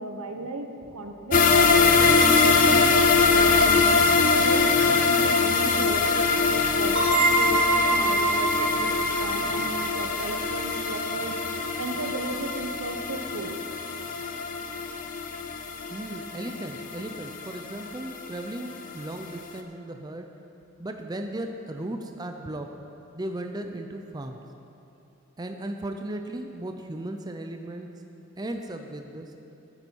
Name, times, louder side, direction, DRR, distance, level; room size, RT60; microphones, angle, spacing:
voice 1, 0.0-2.8 3.3-11.4 11.8-13.6 28.2-28.3, right 2 dB, 90° right, 5 dB, 1.0 m, -35 dB
sound 1, 1.3-18.4 18.7-18.8 19.2-19.3, left 4 dB, 40° left, 0.6 m, -23 dB
sound 2, 7.0-12.4, right 3 dB, 60° right, 2.6 m, -27 dB
voice 2, 15.9-20.3 20.8-22.7 23.1-24.4 25.4-27.9 28.4-29.4, right 1 dB, 20° right, 5 dB, 0.5 m, -36 dB
14.5 x 9.6 x 4.6 m, 2.8 s
head